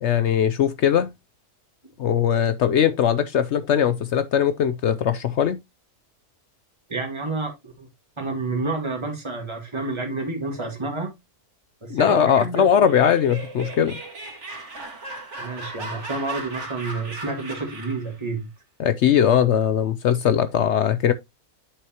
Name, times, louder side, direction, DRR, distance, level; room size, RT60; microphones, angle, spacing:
voice 1, 0.0-1.1 2.0-5.6 11.9-14.0 18.8-21.1, left 9 dB, 65° left, 0.7 m, -20 dB
voice 2, 6.9-7.9 8.2-11.1 11.8-12.9 15.4-18.5, right 3 dB, 20° right, 1.9 m, -29 dB
Laughter, 12.7-18.1, right 2 dB, 50° right, 2.3 m, -36 dB
8.0 x 6.3 x 2.8 m
omnidirectional pair, 1.6 m